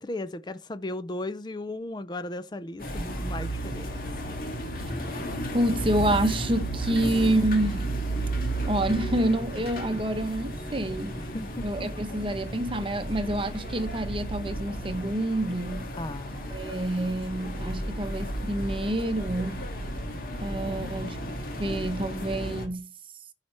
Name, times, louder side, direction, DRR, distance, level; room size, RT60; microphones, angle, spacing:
voice 1, 0.0-3.9 11.2-11.9 15.9-16.5 20.7-21.1, left 2 dB, 25° left, 0.4 m, -36 dB
sound 1, 2.8-22.7, right 1 dB, 55° left, 2.1 m, -33 dB
voice 2, 5.5-7.9 8.4-11.2 11.6-15.9 16.5-19.6 20.4-21.2 21.6-22.9, right 1 dB, 30° right, 0.8 m, -28 dB
15.0 x 5.7 x 3.2 m
head